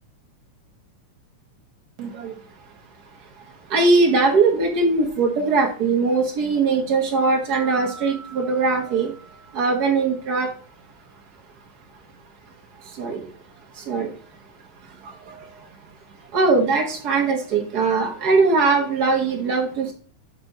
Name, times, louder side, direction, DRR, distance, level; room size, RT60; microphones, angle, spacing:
voice 1, 2.0-2.3 3.7-9.1 9.5-10.5 13.0-13.2 13.9-14.1 16.3-19.9, right 3 dB, 75° right, 2 dB, 0.9 m, -20 dB
sound 1, 7.5-10.6, right 5 dB, 65° left, 2.2 m, -43 dB
6.4 x 5.1 x 5.4 m, 0.40 s
omnidirectional pair, 3.7 m